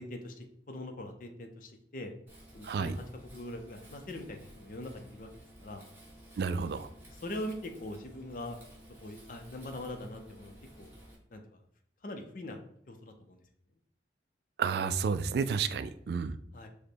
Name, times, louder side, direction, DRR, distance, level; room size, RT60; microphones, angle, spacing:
voice 1, 0.0-2.1 2.5-5.3 5.6-5.9 7.1-8.6 9.0-10.9 11.3-11.6 12.0-12.6 12.9-13.4 16.5-16.7, left 1 dB, 50° left, 5 dB, 0.5 m, -42 dB
Wind, 2.3-11.1, equal, 10° right, 1.4 m, -54 dB
voice 2, 6.4-6.9 14.6-16.3, right 5 dB, 65° right, 13 dB, 0.3 m, -31 dB
5.1 x 2.1 x 4.4 m, 0.68 s
head